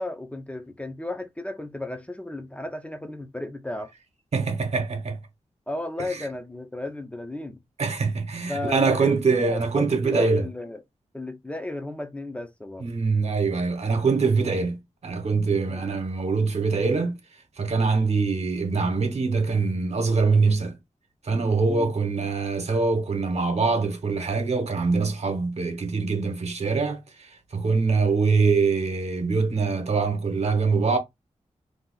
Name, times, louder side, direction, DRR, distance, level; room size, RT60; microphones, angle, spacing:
voice 1, 0.0-3.9 5.7-7.6 8.5-10.8 11.1-12.9 15.7-15.8 21.7-21.9, left 2 dB, 10° left, 0.5 m, -34 dB
voice 2, 4.3-5.2 6.1-6.3 7.8-10.5 12.8-17.2 17.6-20.8 21.2-31.0, right 4 dB, 60° right, 0.9 m, -24 dB
2.7 x 2.3 x 3.8 m
wide cardioid pair, 110°, 13 cm